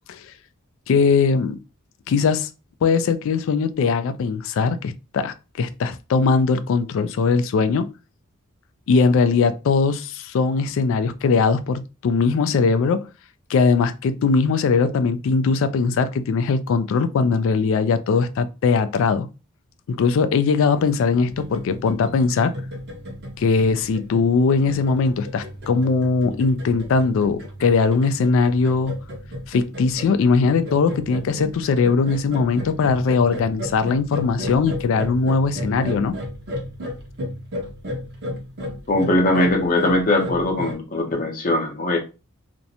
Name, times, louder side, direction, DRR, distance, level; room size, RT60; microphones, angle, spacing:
voice 1, 0.9-1.6 2.1-2.5 2.8-7.9 8.9-13.1 13.5-19.3 19.9-22.5 23.4-28.9 29.5-36.2, left 4 dB, 65° left, 0.3 m, -20 dB
sound 1, 21.2-40.7, left 1 dB, 50° right, 0.7 m, -34 dB
voice 2, 38.9-42.0, left 1 dB, 40° left, 0.7 m, -20 dB
2.5 x 2.1 x 2.7 m
head